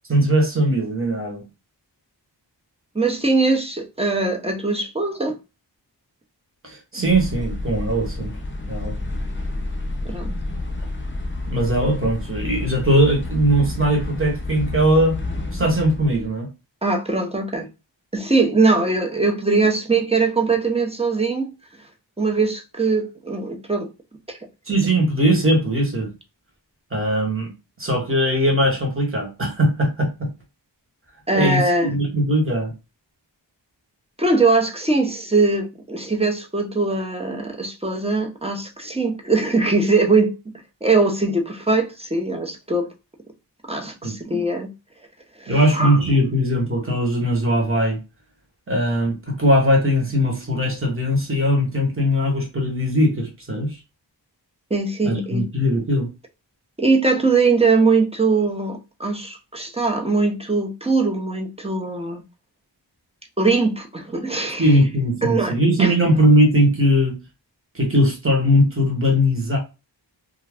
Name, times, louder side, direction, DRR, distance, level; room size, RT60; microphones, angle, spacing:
voice 1, 0.1-1.4 6.6-8.3 8.7-8.9 11.5-15.2 15.5-16.5 24.7-26.1 26.9-27.5 27.8-30.3 31.3-32.7 44.0-44.1 45.5-48.0 48.7-53.8 55.0-56.1 64.6-67.2 67.7-69.6, equal, 30° right, 1.1 m, -20 dB
voice 2, 2.9-5.4 10.0-10.3 16.8-17.7 18.1-21.5 22.2-23.9 24.3-24.4 31.3-31.9 34.2-40.3 40.8-42.9 43.7-44.7 45.4-46.0 54.7-55.4 56.8-62.2 63.4-64.7 65.2-65.5 65.8-65.9, right 3 dB, 15° right, 0.7 m, -21 dB
sound 1, 7.1-16.3, left 2 dB, 25° left, 0.7 m, -29 dB
2.5 x 2.2 x 3.4 m
wide cardioid pair, 50°, 44 cm